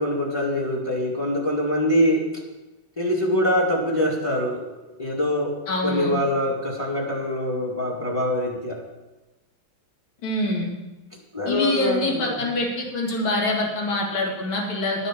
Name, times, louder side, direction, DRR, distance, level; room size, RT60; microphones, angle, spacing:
voice 1, 0.0-2.3 3.0-4.7 5.0-5.5 5.8-8.8 11.3-12.4, left 1 dB, 10° left, -2 dB, 2.0 m, -24 dB
voice 2, 5.7-6.1 10.2-10.7 11.5-15.1, left 2 dB, 70° left, -1 dB, 2.9 m, -25 dB
11.5 x 6.7 x 7.3 m, 1.1 s
omnidirectional pair, 2.3 m